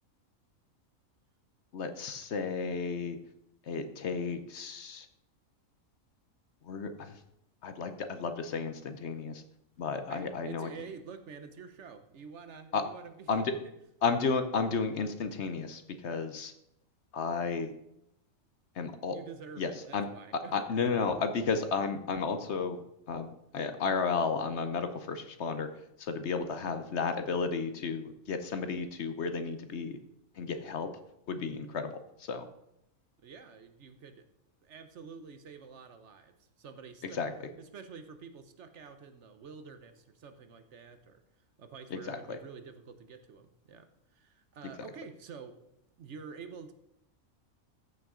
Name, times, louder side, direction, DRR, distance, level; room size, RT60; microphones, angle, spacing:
voice 1, 1.7-3.2 3.6-5.1 6.6-7.2 7.6-9.4 9.8-10.7 12.7-12.8 13.3-13.5 14.0-16.5 17.1-17.7 18.7-19.2 19.6-20.1 20.5-22.8 23.1-23.3 23.5-25.7 26.0-30.0 30.3-30.9 31.3-32.5 37.0-37.5 41.9-42.4, left 5 dB, 60° left, 9 dB, 1.0 m, -33 dB
voice 2, 10.1-13.7 19.1-20.9 33.2-34.2 34.6-37.2 37.6-41.2 41.6-45.6 46.0-46.7, right 5 dB, 60° right, 9 dB, 1.1 m, -48 dB
14.0 x 5.7 x 3.7 m, 0.81 s
omnidirectional pair, 1.4 m